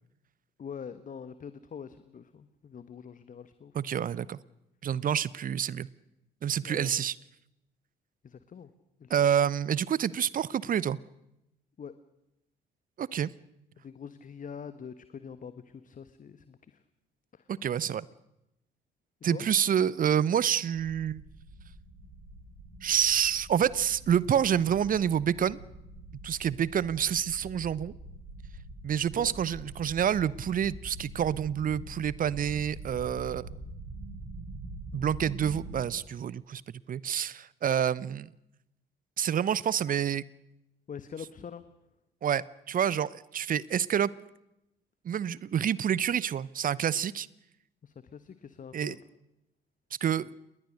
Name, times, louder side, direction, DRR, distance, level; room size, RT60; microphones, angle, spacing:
voice 1, 0.6-3.7 6.6-6.9 8.2-8.7 9.0-9.2 11.8-11.9 13.8-16.8 17.3-17.5 19.3-19.5 29.1-29.3 40.9-41.7 47.8-49.0, left 7 dB, 40° left, 12 dB, 1.3 m, -44 dB
voice 2, 3.7-4.4 4.8-5.9 6.4-7.1 9.1-11.0 13.0-13.3 17.5-18.0 19.2-21.2 22.8-25.6 26.2-27.9 28.8-33.5 34.9-36.6 36.9-38.3 39.2-40.2 42.2-44.1 45.0-47.3 48.7-48.9 50.0-50.3, right 9 dB, 40° right, 22 dB, 0.8 m, -28 dB
sound 1, 20.7-35.8, right 2 dB, 75° right, 6.5 m, -45 dB
28.0 x 20.5 x 6.6 m, 0.87 s
figure-of-eight pair, 45°, 21 cm